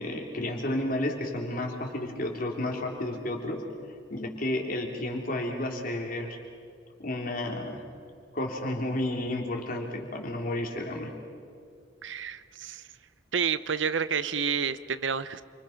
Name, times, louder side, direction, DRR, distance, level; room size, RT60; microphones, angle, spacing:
voice 1, 0.0-3.6 4.1-6.4 7.0-7.9 8.3-11.1, left 1 dB, 45° left, 1 dB, 3.3 m, -31 dB
voice 2, 12.0-12.8 13.3-15.4, right 6 dB, 75° right, 14 dB, 0.8 m, -29 dB
29.0 x 25.0 x 5.9 m, 2.3 s
head